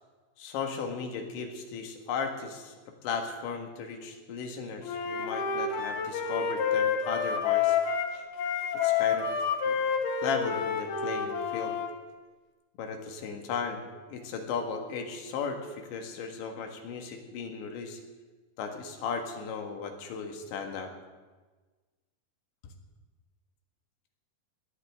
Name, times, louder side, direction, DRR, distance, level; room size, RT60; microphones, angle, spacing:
voice 1, 0.4-2.7 3.0-7.8 8.8-9.3 9.7-9.8 10.2-11.8 12.8-18.0 18.6-20.9, left 5 dB, 85° left, 4 dB, 4.1 m, -36 dB
Wind instrument woodwind instrument, 4.8-11.9, left 7 dB, 70° left, 3.1 m, -29 dB
21.5 x 17.5 x 3.6 m, 1.3 s
omnidirectional pair, 5.1 m